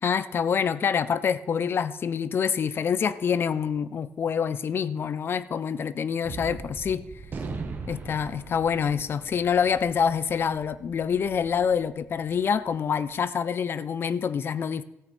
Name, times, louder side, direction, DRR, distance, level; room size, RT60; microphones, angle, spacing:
voice 1, 0.0-7.0 7.9-14.8, left 7 dB, 45° left, 0.5 m, -26 dB
Gunshot gunfire, 6.2-12.8, right 4 dB, 35° right, 1.6 m, -40 dB
14.0 x 9.1 x 4.3 m
cardioid pair, 130°, 5 cm